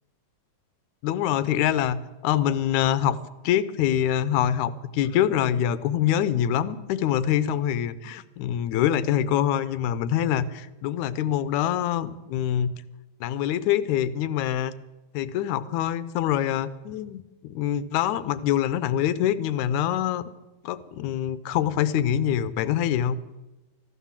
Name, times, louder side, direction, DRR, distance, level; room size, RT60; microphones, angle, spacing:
voice 1, 1.0-3.2 3.4-12.7 13.2-14.7 15.1-20.2 20.6-23.2, left 10 dB, 80° left, 16 dB, 2.0 m, -25 dB
14.0 x 11.5 x 7.3 m, 1.0 s
omnidirectional pair, 3.4 m